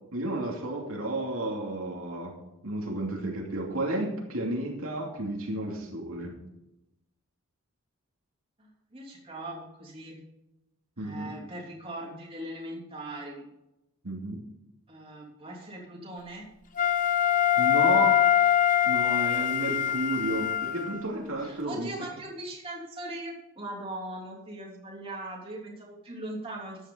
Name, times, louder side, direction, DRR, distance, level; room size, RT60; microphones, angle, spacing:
voice 1, 0.1-2.3 2.6-6.3 11.0-11.3 14.0-14.4 17.6-18.2 18.8-21.9, right 1 dB, 70° right, -1 dB, 2.7 m, -32 dB
voice 2, 8.6-10.2 11.0-13.5 14.9-16.5 21.4-26.8, right 1 dB, 25° right, -3 dB, 3.2 m, -40 dB
Wind instrument woodwind instrument, 16.8-21.1, left 10 dB, 35° left, 1.0 m, -23 dB
14.0 x 10.0 x 4.0 m, 0.91 s
head